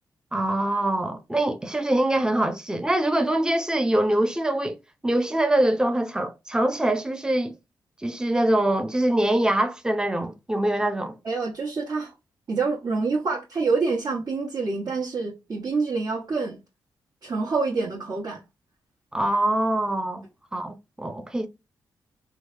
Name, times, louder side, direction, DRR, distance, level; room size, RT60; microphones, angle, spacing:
voice 1, 0.3-4.8 5.0-7.5 8.0-11.2 19.1-20.2 20.5-21.5, right 1 dB, 10° right, 0.6 m, -24 dB
voice 2, 11.2-12.1 12.5-16.6 17.2-18.4, right 4 dB, 60° right, 1.4 m, -27 dB
3.6 x 2.1 x 3.1 m
cardioid pair, 65°, 8 cm